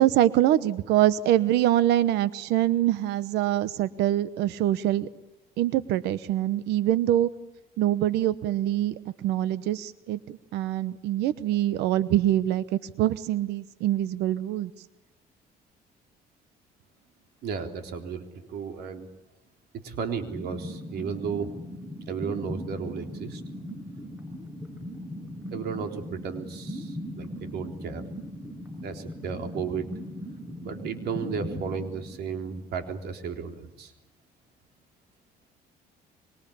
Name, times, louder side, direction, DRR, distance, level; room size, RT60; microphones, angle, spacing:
voice 1, 0.0-5.1 5.6-7.3 7.8-14.7, right 13 dB, 85° right, 15 dB, 1.0 m, -24 dB
voice 2, 17.4-19.1 19.7-21.5 22.1-23.4 25.5-28.0 28.8-29.9 30.6-33.9, right 6 dB, 70° right, 5 dB, 3.7 m, -34 dB
sound 1, 20.3-33.0, equal, 10° right, 5.7 m, -39 dB
25.5 x 25.0 x 8.6 m, 0.89 s
cardioid pair, 110°, 17 cm